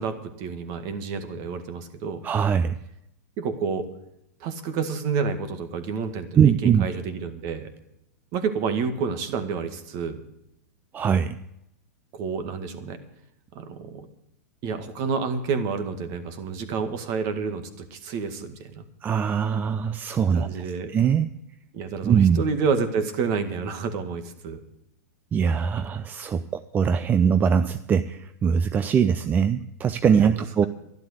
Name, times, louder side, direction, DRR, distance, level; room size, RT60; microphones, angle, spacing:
voice 1, 0.0-2.2 3.4-3.9 4.4-7.7 8.3-10.2 12.1-13.0 13.5-14.1 14.6-17.6 17.9-18.8 20.3-20.9 21.7-24.6 30.1-30.7, right 5 dB, 40° right, 9 dB, 1.9 m, -29 dB
voice 2, 2.2-2.8 6.4-6.9 10.9-11.4 19.0-20.6 20.9-21.3 22.0-22.4 25.3-26.4 26.7-30.6, right 7 dB, 20° right, 11 dB, 0.5 m, -21 dB
12.0 x 11.5 x 6.7 m, 0.81 s
hypercardioid pair, 130°, 9 cm